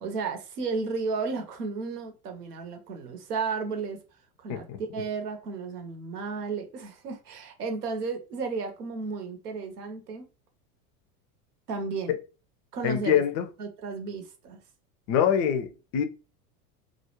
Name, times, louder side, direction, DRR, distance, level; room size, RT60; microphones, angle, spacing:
voice 1, 0.0-4.0 4.4-4.7 4.9-10.3 11.7-12.1 12.7-13.2 13.6-14.6, right 4 dB, 80° right, 0.8 m, -33 dB
voice 2, 12.8-13.5 15.1-16.0, left 8 dB, 40° left, 0.4 m, -24 dB
2.3 x 2.0 x 2.9 m
hypercardioid pair, 80°, 46 cm